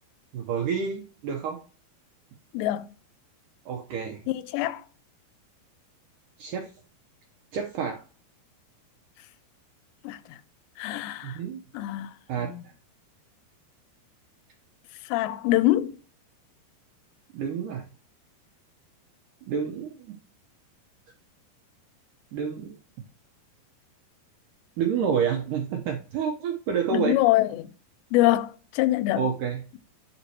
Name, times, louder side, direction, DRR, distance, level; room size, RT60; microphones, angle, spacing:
voice 1, 0.3-1.6 3.7-4.2 6.4-6.7 7.5-8.0 11.2-11.6 12.3-12.5 17.3-17.9 19.4-20.2 22.3-22.7 24.8-27.2 29.1-29.6, right 7 dB, 85° right, 1.9 m, -29 dB
voice 2, 2.5-2.9 4.3-4.8 10.0-10.2 10.8-11.4 11.7-12.1 12.4-12.6 15.1-16.0 26.9-27.7 28.1-29.3, left 15 dB, 90° left, 2.8 m, -24 dB
11.0 x 4.3 x 2.8 m
omnidirectional pair, 4.9 m